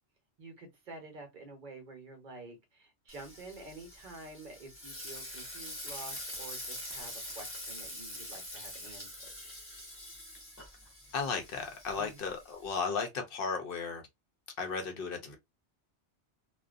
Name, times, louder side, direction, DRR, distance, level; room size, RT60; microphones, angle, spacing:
voice 1, 0.4-9.3 11.9-12.2, right 3 dB, 50° right, 0.9 m, -49 dB
Frying (food), 3.1-12.8, left 1 dB, 15° left, 0.7 m, -45 dB
voice 2, 11.1-14.0 14.6-15.4, left 5 dB, 60° left, 0.8 m, -35 dB
2.5 x 2.3 x 2.4 m
omnidirectional pair, 1.1 m